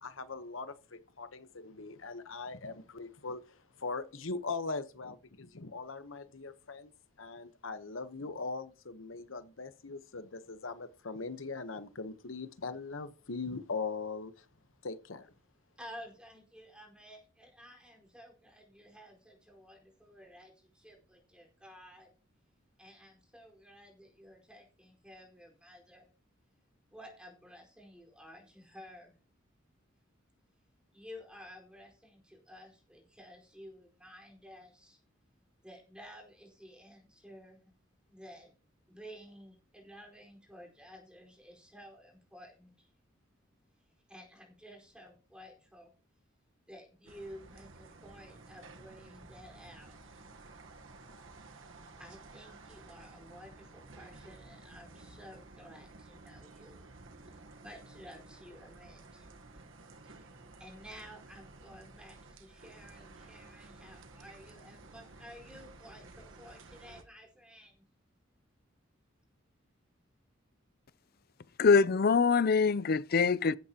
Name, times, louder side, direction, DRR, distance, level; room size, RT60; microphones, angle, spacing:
voice 1, 0.0-6.9 7.2-14.4 14.8-15.3, left 4 dB, 85° left, 1.1 m, -40 dB
voice 2, 15.7-22.1 22.8-26.1 26.9-29.1 30.9-35.0 35.6-37.7 38.1-38.5 38.9-42.9 43.7-45.9 46.7-50.3 52.0-56.8 57.3-59.3 60.0-67.8, equal, 5° right, 4.7 m, -53 dB
sound 1, 47.1-67.0, right 3 dB, 75° right, 1.3 m, -53 dB
voice 3, 71.6-73.6, left 5 dB, 50° left, 0.5 m, -24 dB
15.5 x 12.5 x 3.0 m
head